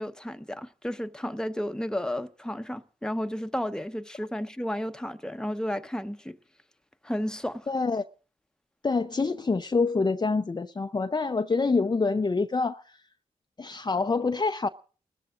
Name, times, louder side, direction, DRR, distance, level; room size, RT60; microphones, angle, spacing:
voice 1, 0.0-6.4 7.0-7.7, equal, 5° left, 1.0 m, -32 dB
voice 2, 7.7-8.0 8.8-12.8 13.6-14.7, left 4 dB, 30° left, 0.6 m, -26 dB
29.0 x 13.5 x 2.5 m
supercardioid pair, 45°, 14 cm